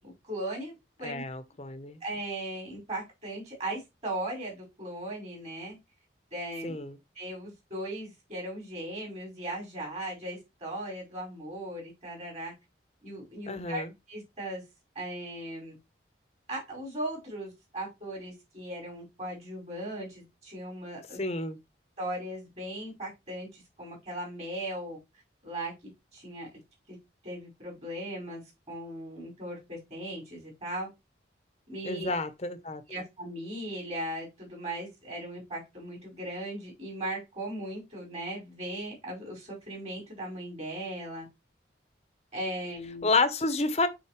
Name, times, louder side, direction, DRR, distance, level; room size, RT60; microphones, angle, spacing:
voice 1, 0.0-1.2 2.0-5.8 6.3-6.7 7.1-12.5 13.0-14.6 14.9-15.7 16.5-21.2 22.0-25.0 25.4-25.7 26.1-26.5 26.9-27.0 27.2-28.4 28.7-30.9 31.7-32.1 32.9-41.2 42.3-43.1, right 1 dB, 35° right, 5.1 m, -38 dB
voice 2, 1.0-2.0 6.6-7.0 13.5-13.9 21.2-21.6 31.8-32.8 43.0-43.9, left 3 dB, 35° left, 0.8 m, -29 dB
8.8 x 4.2 x 3.1 m
head